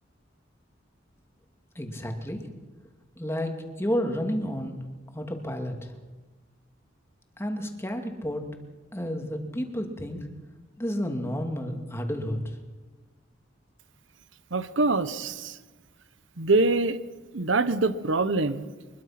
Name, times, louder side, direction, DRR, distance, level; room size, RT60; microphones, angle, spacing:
voice 1, 1.8-2.5 3.2-4.8 5.1-5.9 7.4-8.4 8.9-10.3 10.8-12.6, equal, 15° left, 4 dB, 2.5 m, -31 dB
voice 2, 14.5-15.6 16.4-17.0 17.3-18.6, right 3 dB, 75° right, 12 dB, 1.1 m, -24 dB
24.0 x 22.0 x 6.0 m, 1.3 s
head